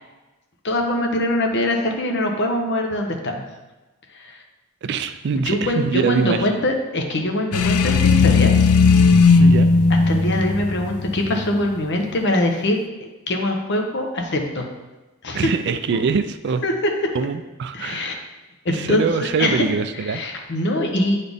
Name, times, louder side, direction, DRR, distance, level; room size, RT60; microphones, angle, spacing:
voice 1, 0.6-3.4 4.1-4.4 5.5-8.5 10.1-14.7 15.2-15.5 16.6-16.7 17.7-18.1 18.6-19.6 20.0-21.2, left 1 dB, 55° left, 3 dB, 0.9 m, -23 dB
voice 2, 4.8-6.6 9.3-9.7 15.3-16.6 17.1-18.3 18.7-20.2, right 5 dB, 50° right, 10 dB, 0.3 m, -23 dB
sound 1, 7.5-11.4, left 4 dB, 85° left, 0.4 m, -15 dB
8.5 x 4.1 x 3.5 m, 1.1 s
head